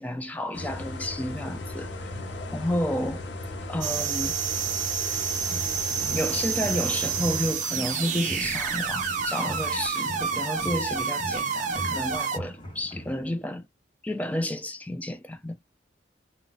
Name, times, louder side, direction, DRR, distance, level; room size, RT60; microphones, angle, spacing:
voice 1, 0.0-2.1 2.5-3.3 3.7-4.4 6.1-13.7 14.0-15.6, left 1 dB, 10° left, 0.4 m, -31 dB
sound 1, 0.5-7.5, left 1 dB, 65° left, 0.6 m, -36 dB
sound 2, 3.8-12.4, right 7 dB, 40° right, 0.6 m, -29 dB
sound 3, 5.5-13.5, equal, 30° left, 1.0 m, -40 dB
2.3 x 2.2 x 3.9 m
head